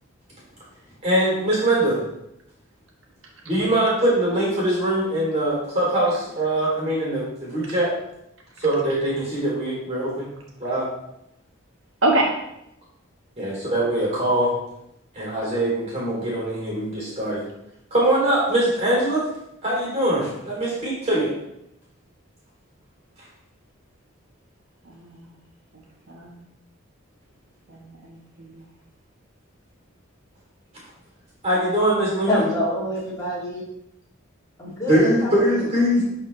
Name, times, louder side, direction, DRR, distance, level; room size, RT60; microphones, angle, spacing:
voice 1, 1.0-2.0 3.4-7.9 8.6-10.3 10.6-10.9 13.4-14.5 15.1-17.4 17.9-19.2 19.6-21.3 31.4-32.4 34.9-36.0, right 1 dB, 30° right, -5 dB, 3.2 m, -22 dB
voice 2, 24.8-25.4 25.7-25.8 26.1-26.4 27.7-28.6, right 2 dB, 70° right, 0 dB, 1.5 m, -26 dB
voice 3, 32.3-33.6 34.6-35.7, left 1 dB, 15° left, -8 dB, 2.7 m, -26 dB
11.5 x 4.4 x 3.3 m, 0.81 s
head